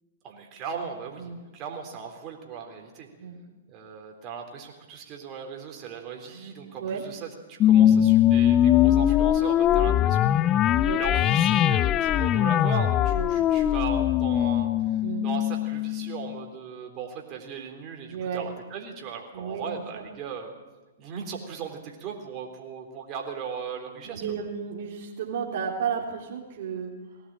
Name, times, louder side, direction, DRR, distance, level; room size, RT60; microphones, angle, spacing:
voice 1, 0.2-3.1 3.7-10.5 11.0-14.7 15.2-20.5 21.0-24.3, right 6 dB, 35° right, 2 dB, 3.9 m, -38 dB
sound 1, 7.6-16.4, left 11 dB, 30° left, 0.6 m, -21 dB
voice 2, 7.7-8.0 9.7-9.9 10.8-11.0 13.1-13.3 15.0-15.3 18.1-18.5 19.3-19.7 19.9-20.1 24.0-26.9, right 7 dB, 60° right, -1 dB, 3.4 m, -33 dB
20.0 x 17.0 x 8.9 m, 1.2 s
hypercardioid pair, 115°, 0 cm